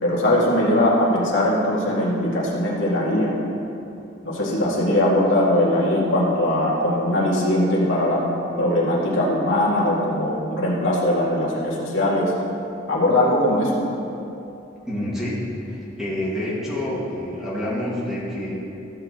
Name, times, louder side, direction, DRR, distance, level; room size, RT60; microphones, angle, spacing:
voice 1, 0.0-3.4 4.2-8.2 8.6-12.3 12.9-13.8, left 1 dB, 90° left, -5 dB, 2.2 m, -20 dB
voice 2, 14.9-18.6, left 1 dB, 5° right, -8 dB, 2.2 m, -28 dB
14.0 x 7.8 x 3.2 m, 2.8 s
head